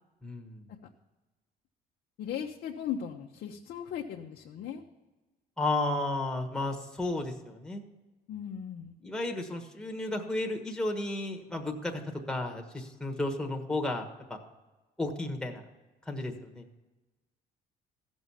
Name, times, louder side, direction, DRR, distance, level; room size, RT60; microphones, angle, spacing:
voice 1, 0.2-0.6 5.6-7.8 9.0-12.0 12.3-14.4 15.0-15.6 16.1-16.7, left 2 dB, 5° left, 2 dB, 1.4 m, -33 dB
voice 2, 2.2-4.8 8.3-8.9, left 8 dB, 65° left, 1 dB, 0.9 m, -37 dB
15.0 x 6.3 x 5.6 m, 1.2 s
cardioid pair, 110°, 17 cm